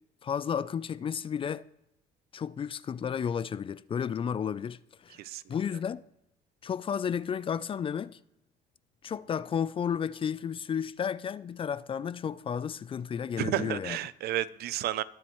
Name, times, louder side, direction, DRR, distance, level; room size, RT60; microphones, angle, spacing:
voice 1, 0.2-1.7 2.3-5.2 5.5-6.0 6.6-8.2 9.0-14.0, left 7 dB, 30° left, 0.4 m, -32 dB
voice 2, 13.4-15.0, right 13 dB, 70° right, 0.5 m, -31 dB
21.5 x 7.4 x 3.1 m
cardioid pair, 110°, 17 cm